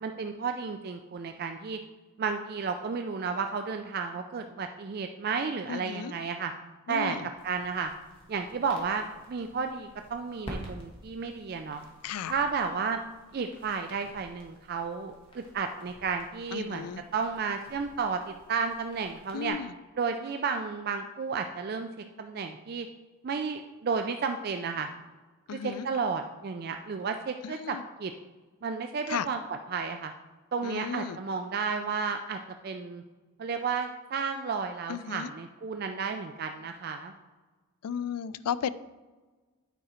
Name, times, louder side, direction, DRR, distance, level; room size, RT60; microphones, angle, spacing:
voice 1, 0.0-1.8 2.2-6.5 6.9-7.2 7.4-7.9 8.3-11.8 12.2-13.0 13.3-19.6 20.0-21.9 22.2-22.9 23.2-24.9 25.5-28.1 28.6-29.4 29.7-30.1 30.5-33.0 33.4-37.1, right 5 dB, 45° right, 6 dB, 0.3 m, -32 dB
voice 2, 5.7-6.1 6.9-7.3 12.0-12.4 16.5-17.0 19.3-19.7 25.5-25.9 27.4-27.8 29.1-29.3 30.6-31.2 34.9-35.3 37.8-38.7, left 8 dB, 90° left, 16 dB, 0.4 m, -34 dB
sound 1, 7.4-19.5, equal, 25° left, 1.4 m, -50 dB
9.2 x 4.9 x 4.3 m, 1.3 s
head